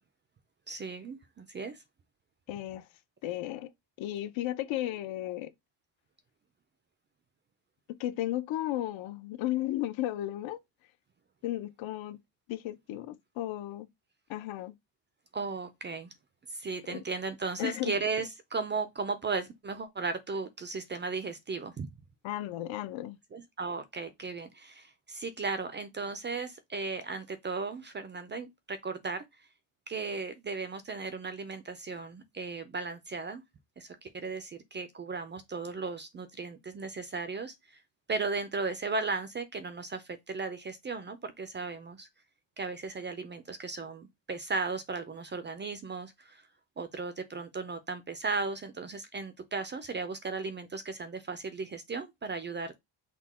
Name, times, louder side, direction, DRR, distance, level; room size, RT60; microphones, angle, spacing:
voice 1, 0.7-1.8 15.3-16.1 16.5-21.9 23.3-29.2 29.9-33.4 33.8-37.8 38.1-42.1 42.6-46.5 46.8-52.8, right 4 dB, 25° right, 0.4 m, -36 dB
voice 2, 2.5-2.8 3.2-3.7 4.0-5.5 8.0-10.6 11.4-12.2 12.5-13.9 14.3-14.7 16.9-17.0 17.6-18.0 22.2-23.2, left 14 dB, 70° left, 0.7 m, -34 dB
5.9 x 2.2 x 4.2 m
cardioid pair, 165°, 48 cm